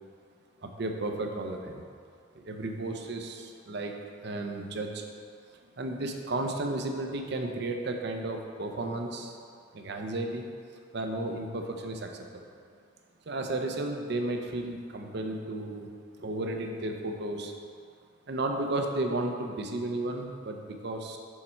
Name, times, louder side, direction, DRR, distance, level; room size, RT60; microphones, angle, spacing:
voice 1, 0.6-1.8 2.3-4.0 4.2-5.0 5.5-9.4 9.7-10.5 10.9-12.5 13.3-15.9 16.2-17.5 18.3-21.2, right 2 dB, 50° right, 3 dB, 0.5 m, -33 dB
6.5 x 4.3 x 4.4 m, 2.3 s
head